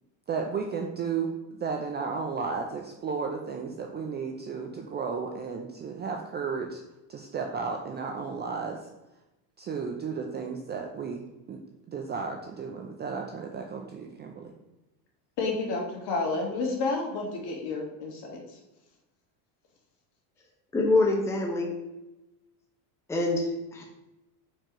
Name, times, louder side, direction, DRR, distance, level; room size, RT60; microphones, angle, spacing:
voice 1, 0.3-6.8 7.1-8.8 9.6-11.2 11.5-11.6 11.9-14.5, right 5 dB, 25° right, 2 dB, 0.4 m, -33 dB
voice 2, 15.4-18.4, left 3 dB, 55° left, 0 dB, 2.0 m, -30 dB
voice 3, 20.7-21.8 23.1-23.8, left 2 dB, 5° left, -1 dB, 0.8 m, -25 dB
4.6 x 4.5 x 5.1 m, 0.97 s
cardioid pair, 140°, 46 cm